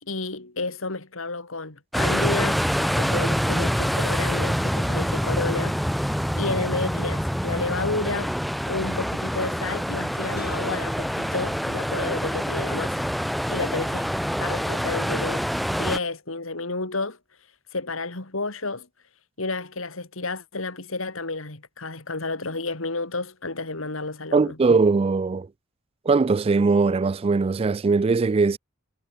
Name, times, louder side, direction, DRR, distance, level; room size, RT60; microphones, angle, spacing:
voice 1, 0.0-6.0 6.3-8.3 8.7-13.1 13.5-14.1 14.4-15.5 15.7-17.2 17.7-18.9 19.4-24.6, left 3 dB, 75° left, 2.9 m, -31 dB
sound 1, 1.9-16.0, equal, ahead, 1.5 m, -26 dB
sound 2, 10.3-13.5, left 3 dB, 50° left, 3.8 m, -48 dB
voice 2, 24.3-25.5 26.1-28.6, right 4 dB, 30° right, 0.3 m, -20 dB
head